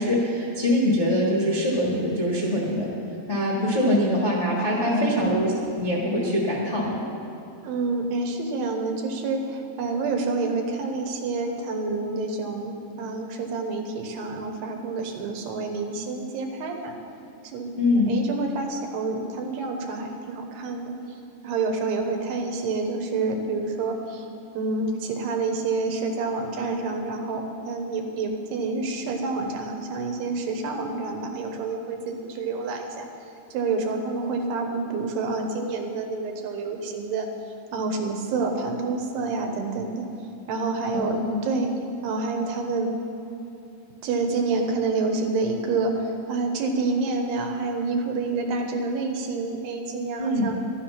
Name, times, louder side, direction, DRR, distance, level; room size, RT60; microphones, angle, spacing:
voice 1, 0.0-2.9 3.3-7.1 17.8-18.2 40.9-41.5 50.2-50.5, left 1 dB, 85° left, -5 dB, 0.6 m, -23 dB
voice 2, 4.8-5.3 7.6-16.9 17.4-24.3 24.5-33.1 33.5-37.3 37.7-40.1 40.5-41.7 42.0-43.0 44.0-50.5, right 3 dB, 80° right, 3 dB, 3.2 m, -28 dB
13.5 x 11.0 x 5.8 m, 2.7 s
omnidirectional pair, 4.8 m